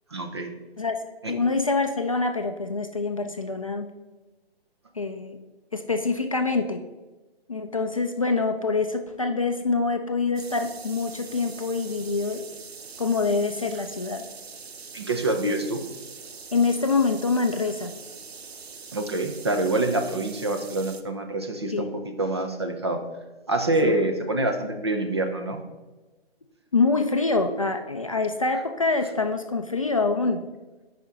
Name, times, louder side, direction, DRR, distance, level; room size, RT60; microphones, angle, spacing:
voice 1, 0.1-0.5 1.2-1.3 14.9-15.8 18.9-21.9 22.2-23.0 23.5-25.6, right 2 dB, 25° right, 5 dB, 0.4 m, -26 dB
voice 2, 1.3-3.9 5.0-5.4 5.7-6.8 7.5-12.4 13.0-14.2 16.5-17.9 21.7-21.9 23.8-24.0 26.7-30.4, left 3 dB, 35° left, 6 dB, 0.4 m, -25 dB
sound 1, 10.4-21.0, right 5 dB, 75° right, 0.8 m, -43 dB
6.2 x 5.1 x 4.9 m, 1.2 s
figure-of-eight pair, 145°, 32 cm